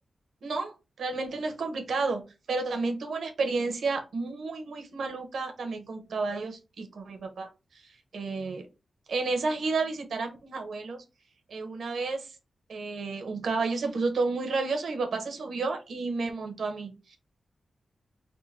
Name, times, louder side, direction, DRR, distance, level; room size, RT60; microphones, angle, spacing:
voice 1, 0.4-2.2 2.5-8.7 9.1-11.0 11.5-12.3 12.7-17.2, right 3 dB, 80° right, 5 dB, 1.0 m, -31 dB
3.6 x 2.2 x 4.2 m, 0.28 s
wide cardioid pair, 105°, 0 cm